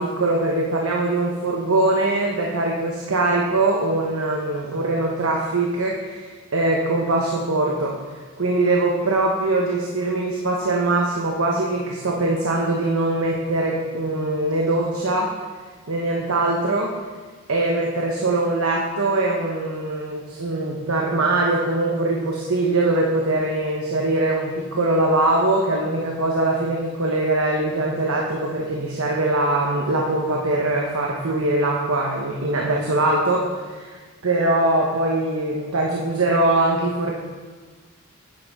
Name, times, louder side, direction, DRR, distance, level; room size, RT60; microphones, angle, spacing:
voice 1, 0.0-7.9 8.4-15.3 15.9-16.9 17.5-33.4 33.7-37.1, right 2 dB, 75° right, -1 dB, 1.0 m, -22 dB
9.2 x 9.2 x 3.6 m, 1.4 s
head